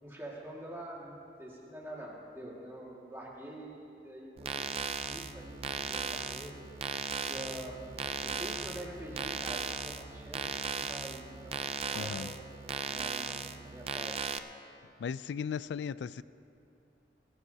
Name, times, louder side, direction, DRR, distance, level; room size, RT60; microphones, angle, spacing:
voice 1, 0.0-6.6 7.3-7.9 8.2-12.4 12.9-14.2, right 1 dB, 15° right, -4 dB, 2.0 m, -46 dB
sound 1, 4.4-14.4, right 5 dB, 35° right, 0.4 m, -37 dB
sound 2, 4.6-11.5, equal, 15° left, 3.1 m, -55 dB
voice 2, 11.9-12.3 15.0-16.2, left 6 dB, 85° left, 17 dB, 0.3 m, -36 dB
21.5 x 14.5 x 2.8 m, 2.7 s
head